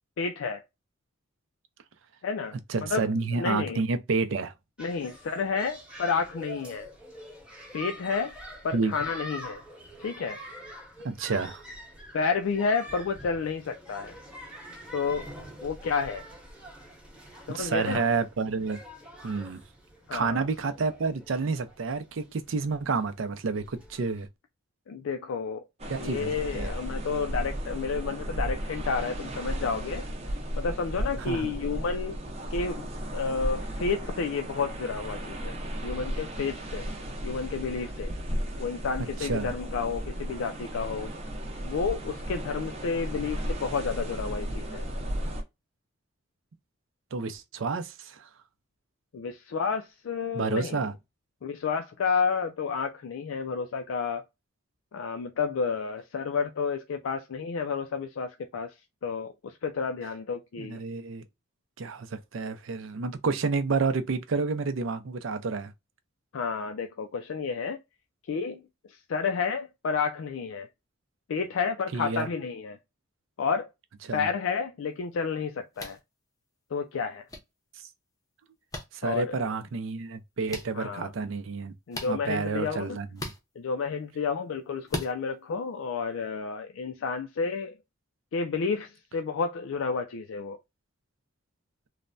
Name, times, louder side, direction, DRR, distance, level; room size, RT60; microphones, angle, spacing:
voice 1, 0.2-0.6 2.2-3.8 4.8-6.9 7.7-8.3 8.6-9.6 10.0-10.4 12.1-14.1 14.9-15.3 15.6-16.3 17.5-18.1 20.1-20.4 24.9-30.1 30.6-32.2 32.5-35.5 35.8-36.9 37.2-38.1 38.6-41.1 41.6-44.9 49.1-50.9 51.4-54.2 54.9-58.7 59.0-60.8 66.3-67.8 68.3-70.7 71.3-72.8 73.4-73.7 74.1-76.0 76.7-77.2 79.0-79.5 80.7-81.1 81.9-83.0 83.6-87.8 88.3-90.6, left 5 dB, 90° left, 0.4 m, -31 dB
voice 2, 2.7-4.5 8.7-8.9 11.0-11.6 17.5-18.8 19.2-19.6 20.1-24.3 25.9-26.7 31.2-31.5 39.2-39.5 47.1-48.3 50.3-50.9 60.6-61.2 61.8-65.7 71.9-72.3 74.0-74.3 78.9-81.7 82.1-83.3, right 4 dB, 75° right, 0.5 m, -29 dB
sound 1, 4.8-24.3, equal, 5° right, 0.9 m, -45 dB
sound 2, 25.8-45.4, equal, 35° right, 0.6 m, -35 dB
sound 3, 75.7-76.0 77.3-77.4 78.7-78.8 80.5-80.7 81.9-82.1 83.1-83.4 84.9-85.1, left 1 dB, 20° left, 0.6 m, -36 dB
3.2 x 2.1 x 2.4 m
head